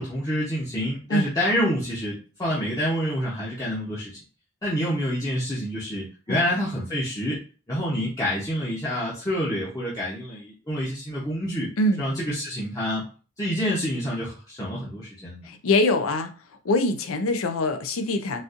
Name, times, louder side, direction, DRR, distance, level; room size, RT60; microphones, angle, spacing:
voice 1, 0.0-4.2 4.6-7.4 7.7-11.7 12.0-13.0 13.4-15.5, equal, 15° left, -7 dB, 0.8 m, -27 dB
voice 2, 15.4-16.3 16.6-18.4, left 2 dB, 80° left, 8 dB, 0.5 m, -23 dB
4.0 x 2.5 x 2.5 m, 0.36 s
head